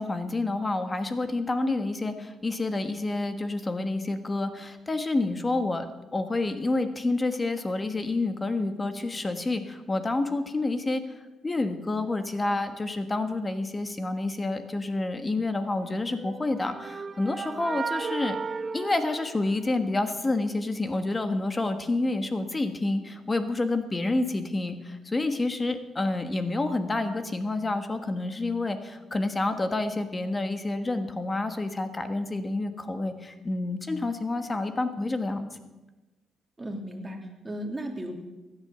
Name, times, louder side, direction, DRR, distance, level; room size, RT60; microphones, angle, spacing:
voice 1, 0.0-5.8 6.1-11.0 11.4-18.4 18.7-35.5, left 2 dB, 25° left, 8 dB, 1.4 m, -28 dB
sound 1, 16.1-20.0, right 5 dB, 35° right, 0.5 m, -35 dB
voice 2, 36.6-38.1, right 1 dB, 20° right, 2 dB, 2.9 m, -35 dB
16.0 x 11.0 x 6.9 m, 1.2 s
cardioid pair, 90°, 0 cm